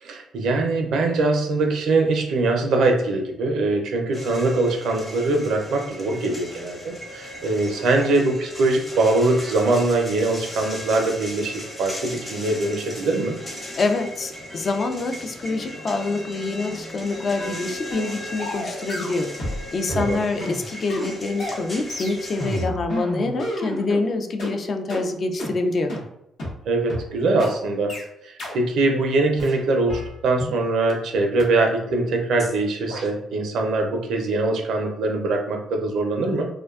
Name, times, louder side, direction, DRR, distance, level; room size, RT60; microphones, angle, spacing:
voice 1, 0.0-13.4 19.9-20.2 26.7-27.9 28.2-36.5, right 2 dB, 75° right, 3 dB, 0.4 m, -22 dB
sound 1, 4.1-22.7, left 1 dB, 20° left, 0.7 m, -37 dB
voice 2, 13.8-25.9, left 3 dB, 45° left, 5 dB, 0.3 m, -26 dB
sound 2, 17.4-17.6 17.9-18.1 18.4-19.6 19.9-24.0 24.4-24.5 24.9-25.0 25.4-25.5 25.9-26.0 26.4-26.5 26.9-27.0 27.4-27.5 27.9-28.0 28.4-28.5 28.9-29.1 29.4-30.6 30.9-31.0 31.4-31.5 31.9-32.1 32.4-32.6 32.9-33.1, left 1 dB, 65° left, 0.8 m, -31 dB
2.5 x 2.2 x 2.3 m, 0.80 s
cardioid pair, 90°, 0 cm